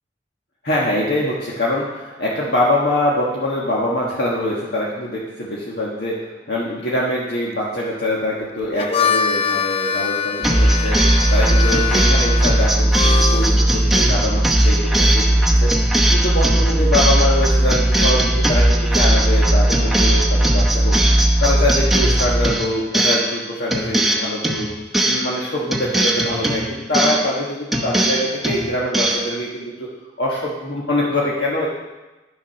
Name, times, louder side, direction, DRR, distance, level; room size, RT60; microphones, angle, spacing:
voice 1, 0.6-6.2 6.5-11.0 11.3-15.7 16.1-21.0 21.4-24.7 25.0-29.9 30.2-31.7, left 1 dB, 60° left, -5 dB, 1.5 m, -23 dB
Harmonica, 8.6-13.6, left 6 dB, 30° left, 0.3 m, -23 dB
sound 1, 10.4-23.4 23.7-25.4 25.7-27.4 27.7-29.3, right 1 dB, ahead, 0.9 m, -17 dB
11.0 x 7.1 x 5.7 m, 1.1 s
head